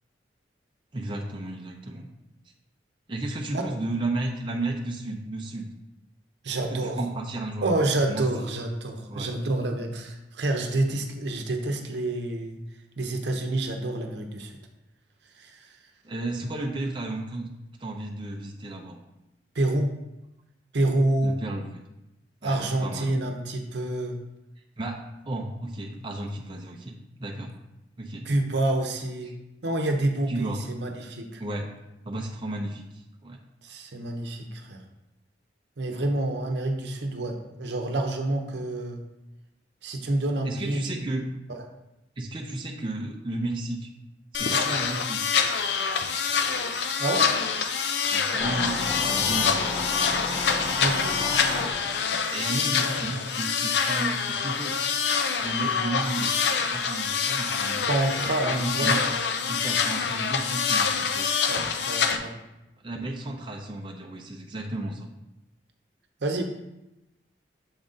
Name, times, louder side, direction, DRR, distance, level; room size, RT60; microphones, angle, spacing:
voice 1, 0.9-2.1 3.1-5.7 6.7-7.7 8.1-8.5 9.1-9.3 16.0-17.5 17.8-19.0 21.2-21.8 22.4-23.2 24.8-25.0 25.3-27.5 28.0-28.3 29.2-29.3 30.3-30.6 31.4-31.7 32.1-33.4 35.9-36.1 40.4-41.2 42.2-43.9 44.3-45.2 48.1-49.6 52.3-54.8 55.4-57.9 58.4-59.1 59.5-61.3 62.8-65.1, right 2 dB, 25° right, 0 dB, 0.5 m, -33 dB
voice 2, 6.4-7.1 7.6-12.6 13.0-14.5 15.4-15.7 19.5-19.9 20.7-21.4 22.4-24.1 28.2-29.3 29.6-31.4 33.6-34.8 35.8-39.0 39.8-41.1 41.5-41.6 47.0-47.3 50.8-51.2 57.9-59.0 61.5-62.3 66.2-66.4, right 2 dB, 70° right, 4 dB, 0.8 m, -28 dB
sound 1, 44.3-62.2, left 6 dB, 65° left, 0.5 m, -26 dB
sound 2, 48.4-52.5 53.4-53.5, left 2 dB, 40° left, 1.9 m, -33 dB
7.0 x 3.9 x 3.8 m, 0.93 s
head